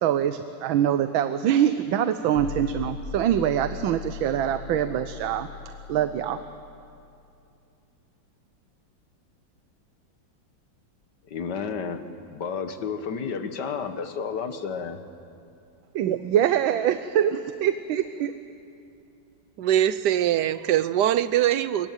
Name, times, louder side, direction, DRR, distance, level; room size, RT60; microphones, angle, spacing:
voice 1, 0.0-5.5 5.9-6.5 15.9-18.3, right 10 dB, 90° right, 11 dB, 1.6 m, -24 dB
sound 1, 2.3-7.4, left 7 dB, 85° left, 2.1 m, -39 dB
voice 2, 11.3-12.0 12.3-15.0, left 6 dB, 60° left, 9 dB, 1.9 m, -31 dB
voice 3, 19.6-21.9, right 11 dB, 65° right, 15 dB, 1.3 m, -22 dB
25.0 x 22.0 x 9.1 m, 2.6 s
omnidirectional pair, 2.1 m